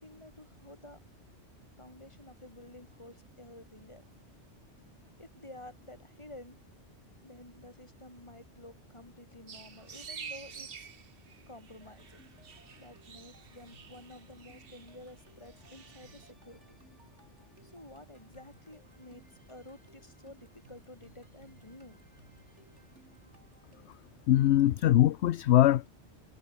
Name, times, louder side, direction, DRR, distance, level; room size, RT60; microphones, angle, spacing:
voice 1, 0.0-1.0 1.8-4.0 5.2-6.6 7.2-10.9 11.4-12.2 12.8-16.8 17.6-22.0, left 1 dB, 25° left, 3.7 m, -51 dB
sound 1, 9.5-16.3, right 6 dB, 55° right, 1.3 m, -49 dB
sound 2, 11.8-24.1, right 2 dB, 75° right, 6.6 m, -63 dB
voice 2, 24.3-25.9, left 13 dB, 70° left, 0.8 m, -22 dB
omnidirectional pair, 1.2 m